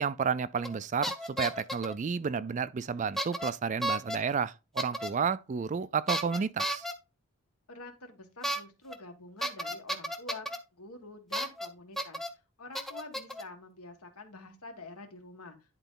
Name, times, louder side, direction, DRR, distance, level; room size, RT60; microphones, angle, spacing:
voice 1, 0.0-6.9, right 6 dB, 35° right, 0.3 m, -31 dB
sound 1, 0.6-0.8 1.0-1.9 3.2-3.5 3.8-4.2 4.8-5.1 6.1-6.9 8.4-8.6 8.9-9.0 9.4-10.6 11.3-11.7 12.0-12.3 12.7-13.4, right 1 dB, ahead, 0.6 m, -33 dB
voice 2, 7.7-10.5 10.7-12.2 12.6-15.6, left 3 dB, 80° left, 1.7 m, -47 dB
10.5 x 3.9 x 3.9 m
head